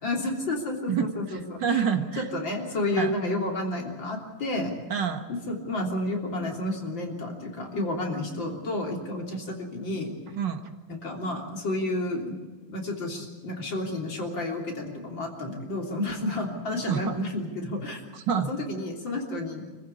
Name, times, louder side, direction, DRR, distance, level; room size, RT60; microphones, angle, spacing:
voice 1, 0.0-1.8 2.2-4.7 5.3-10.1 10.9-12.4 12.7-18.0 18.5-19.7, left 1 dB, 70° left, 0 dB, 4.1 m, -31 dB
voice 2, 0.9-2.3 3.0-3.1 4.9-5.2 10.3-10.6 16.9-17.2 18.1-18.5, right 7 dB, 65° right, 6 dB, 2.1 m, -27 dB
26.5 x 15.0 x 8.5 m, 1.3 s
omnidirectional pair, 2.1 m